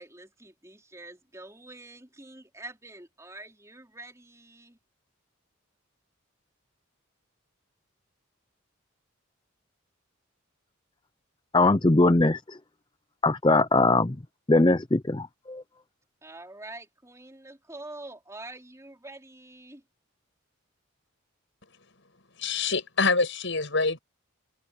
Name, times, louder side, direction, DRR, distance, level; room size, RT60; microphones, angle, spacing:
voice 1, 0.0-4.8 16.2-19.8, right 2 dB, 15° right, 4.3 m, -45 dB
voice 2, 11.5-12.6 13.2-14.2 14.5-15.6, left 2 dB, 20° left, 0.6 m, -21 dB
voice 3, 22.4-24.0, left 4 dB, 60° left, 7.0 m, -25 dB
open air
head